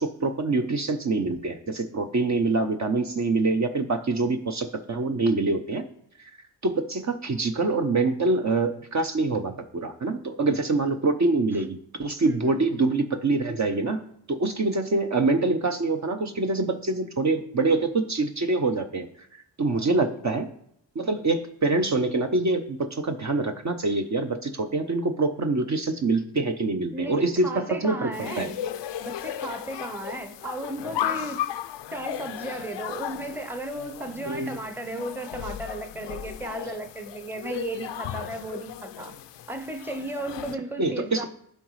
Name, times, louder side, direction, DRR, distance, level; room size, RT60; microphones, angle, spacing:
voice 1, 0.0-5.8 6.2-6.3 6.6-14.0 14.3-19.1 19.6-20.5 20.9-28.5 34.3-34.6 40.8-41.3, right 3 dB, 40° right, 0.8 m, -25 dB
voice 2, 12.2-12.7 19.7-20.0 26.9-28.6 29.0-31.4 31.9-39.1 39.5-41.3, right 2 dB, 5° right, 0.8 m, -35 dB
sound 1, 28.1-40.6, left 11 dB, 70° left, 0.5 m, -35 dB
12.0 x 4.0 x 3.2 m
supercardioid pair, 50°, 44 cm